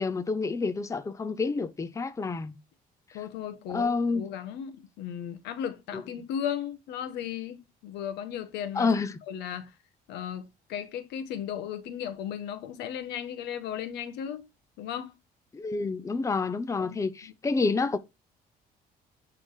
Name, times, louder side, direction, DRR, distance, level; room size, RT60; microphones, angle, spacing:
voice 1, 0.0-2.6 3.7-4.3 8.8-9.1 15.5-18.0, left 4 dB, 20° left, 0.7 m, -28 dB
voice 2, 3.1-8.9 9.3-9.7 10.1-14.5 14.8-15.1 16.8-17.3, left 9 dB, 85° left, 1.4 m, -36 dB
10.5 x 3.8 x 4.9 m
cardioid pair, 110°, 17 cm